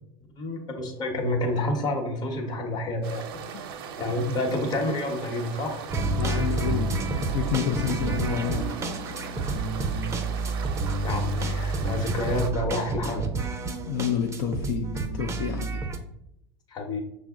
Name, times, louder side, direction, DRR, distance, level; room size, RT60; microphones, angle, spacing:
voice 1, 0.4-3.2 4.0-5.8 11.0-13.3 16.7-17.0, left 1 dB, 35° left, 3 dB, 0.9 m, -29 dB
sound 1, 3.0-12.5, right 7 dB, 80° right, 0.5 m, -39 dB
sound 2, 5.9-16.0, right 3 dB, 20° right, 0.5 m, -29 dB
voice 2, 6.2-6.9 7.3-8.7 13.9-14.9 15.1-15.8, left 8 dB, 65° left, 3 dB, 0.5 m, -29 dB
5.9 x 2.1 x 3.6 m, 0.79 s
supercardioid pair, 120°, 12 cm